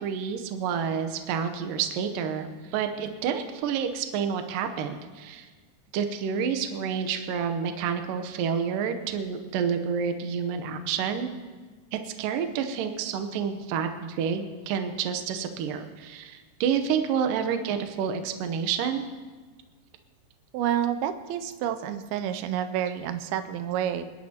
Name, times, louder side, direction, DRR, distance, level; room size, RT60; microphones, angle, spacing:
voice 1, 0.0-5.5 5.9-11.3 11.9-19.0, right 7 dB, 70° right, 7 dB, 2.4 m, -29 dB
voice 2, 20.5-24.0, right 10 dB, 90° right, 10 dB, 2.5 m, -29 dB
28.0 x 11.0 x 2.9 m, 1.4 s
omnidirectional pair, 4.3 m